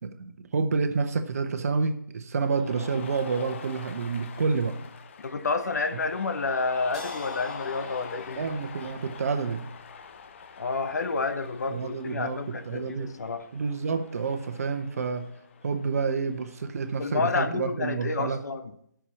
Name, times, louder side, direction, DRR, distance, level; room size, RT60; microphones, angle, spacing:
voice 1, 0.0-4.8 8.4-9.7 11.7-13.1 13.5-15.3 15.6-18.4, right 4 dB, 50° right, 9 dB, 1.0 m, -29 dB
Cheering, 2.4-17.2, left 6 dB, 40° left, 0.7 m, -44 dB
voice 2, 5.2-8.5 10.6-13.5 17.0-18.7, left 4 dB, 60° left, 9 dB, 1.0 m, -29 dB
sound 1, 6.9-13.9, right 2 dB, ahead, 2.2 m, -54 dB
11.0 x 6.2 x 7.1 m, 0.72 s
figure-of-eight pair, 150°, 10 cm